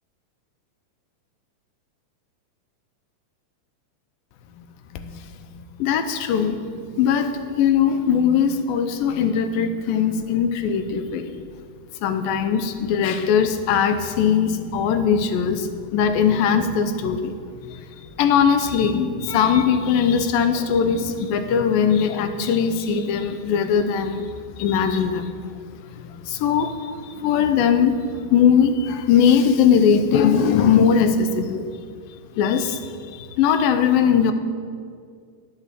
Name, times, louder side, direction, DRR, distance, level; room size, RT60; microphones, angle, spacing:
voice 1, 5.8-6.6 7.0-11.4 12.0-17.3 17.7-24.3 24.5-25.4 26.0-31.7 32.4-34.3, left 7 dB, 80° left, 9 dB, 2.6 m, -20 dB
11.0 x 9.5 x 7.5 m, 2.1 s
omnidirectional pair, 4.1 m